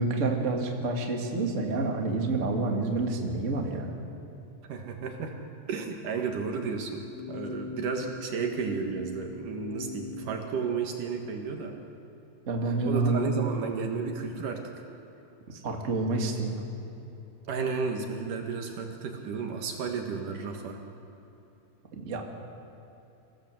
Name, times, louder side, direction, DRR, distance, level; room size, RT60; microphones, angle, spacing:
voice 1, 0.0-3.9 12.5-13.3 15.5-16.6 21.9-22.2, right 3 dB, 30° right, 1 dB, 1.5 m, -28 dB
voice 2, 4.7-5.3 5.7-7.0 7.3-11.8 12.9-14.6 17.5-20.8, right 5 dB, 60° right, 3 dB, 2.8 m, -32 dB
sound 1, 7.0-10.3, left 3 dB, 70° left, 7.2 m, -40 dB
26.0 x 17.0 x 7.7 m, 3.0 s
omnidirectional pair, 4.8 m